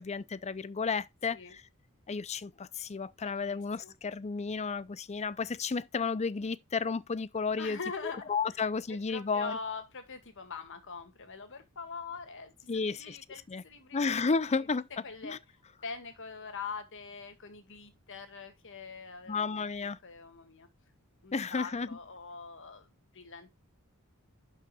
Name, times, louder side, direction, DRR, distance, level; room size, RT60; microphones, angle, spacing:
voice 1, 0.0-1.6 2.1-7.8 8.3-9.6 12.7-13.2 13.5-13.6 13.9-14.9 15.2-15.4 19.3-20.0 21.3-22.0, left 4 dB, 30° left, 0.5 m, -32 dB
voice 2, 3.2-3.9 7.6-8.6 9.1-14.2 14.4-14.5 15.0-15.4 15.8-20.7 21.2-22.9 23.1-23.5, left 5 dB, 60° left, 2.1 m, -43 dB
11.5 x 5.7 x 2.4 m
head